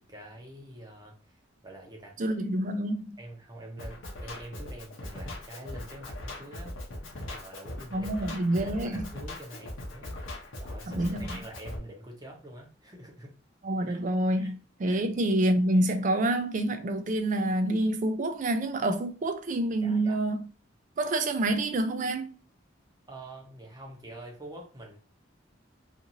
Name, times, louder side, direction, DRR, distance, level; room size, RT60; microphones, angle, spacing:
voice 1, 0.0-2.2 3.2-6.7 7.1-13.3 13.8-14.0 14.3-14.5 14.8-15.0 19.8-20.2 23.1-25.0, right 1 dB, 20° right, 0.8 m, -46 dB
voice 2, 2.2-3.2 7.9-9.0 10.9-11.3 13.6-20.4 21.0-22.3, right 1 dB, 40° right, 0.4 m, -27 dB
Drum kit, 3.8-11.8, left 1 dB, 80° left, 0.8 m, -40 dB
2.6 x 2.5 x 2.8 m
head